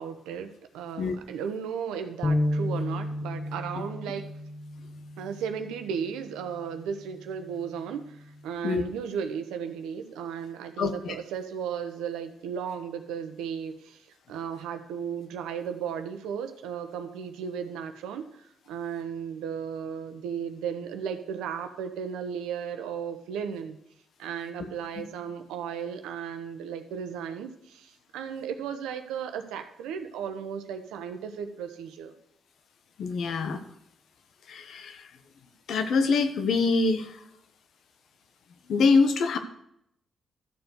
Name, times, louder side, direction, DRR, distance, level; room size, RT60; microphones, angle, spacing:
voice 1, 0.0-4.2 5.2-23.8 24.2-32.1, right 7 dB, 90° right, 7 dB, 1.0 m, -35 dB
sound 1, 2.2-8.5, left 1 dB, 25° left, 1.0 m, -33 dB
voice 2, 10.8-11.1 33.0-33.6 34.5-35.0 35.7-37.1 38.7-39.4, left 4 dB, 75° left, 8 dB, 1.1 m, -24 dB
13.0 x 4.5 x 7.9 m, 0.76 s
supercardioid pair, 55°, 0 cm